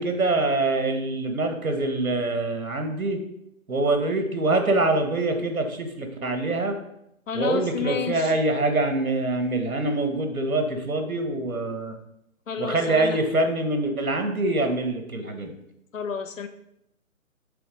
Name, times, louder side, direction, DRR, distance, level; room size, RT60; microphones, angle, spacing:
voice 1, 0.0-3.2 3.7-6.8 7.3-12.0 12.6-15.5, right 2 dB, 85° right, 5 dB, 1.5 m, -25 dB
voice 2, 7.3-8.3 12.5-13.2 15.9-16.5, left 7 dB, 65° left, 9 dB, 0.9 m, -30 dB
7.7 x 3.4 x 5.1 m, 0.81 s
figure-of-eight pair, 150°, 42 cm